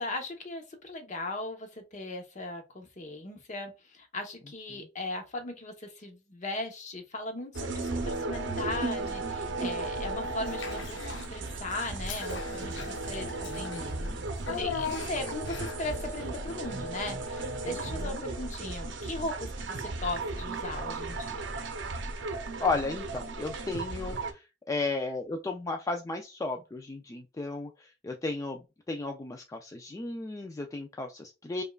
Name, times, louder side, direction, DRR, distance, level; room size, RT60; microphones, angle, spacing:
voice 1, 0.0-13.8 14.5-21.4, left 2 dB, 40° left, 0.8 m, -38 dB
sound 1, 7.5-24.3, right 2 dB, 70° right, 0.6 m, -35 dB
Child speech kid speaking / Bathtub (filling or washing), 10.4-11.3 11.7-15.9, left 5 dB, 70° left, 0.5 m, -39 dB
voice 2, 13.5-14.2 17.6-18.2 22.6-28.6 28.9-31.6, left 3 dB, 15° left, 0.3 m, -34 dB
5.1 x 2.3 x 2.3 m
head